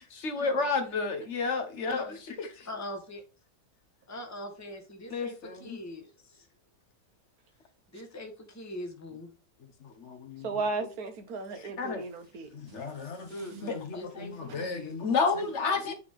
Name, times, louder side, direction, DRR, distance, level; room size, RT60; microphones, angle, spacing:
voice 1, 0.2-2.7 5.1-5.8 10.0-10.6 11.6-12.0 12.5-15.9, left 4 dB, 50° left, 1.2 m, -31 dB
voice 2, 2.6-3.2 4.1-6.4 7.9-9.3 13.3-15.0, left 1 dB, 10° left, 1.1 m, -42 dB
voice 3, 10.4-12.5, right 3 dB, 70° right, 1.5 m, -34 dB
8.5 x 3.4 x 3.6 m
omnidirectional pair, 1.6 m